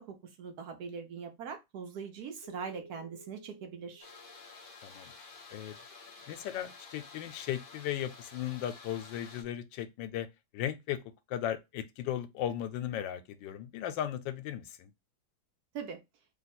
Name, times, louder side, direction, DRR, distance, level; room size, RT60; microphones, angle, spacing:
voice 1, 0.0-4.1 15.7-16.0, right 6 dB, 65° right, 1.1 m, -42 dB
Keyboard (musical), 2.4-5.4, right 1 dB, 20° right, 0.6 m, -55 dB
sound 1, 4.0-9.4, left 4 dB, 55° left, 0.5 m, -51 dB
voice 2, 6.3-10.3 10.5-11.0 11.3-14.9, left 11 dB, 85° left, 1.3 m, -36 dB
3.1 x 2.3 x 4.1 m
omnidirectional pair, 2.0 m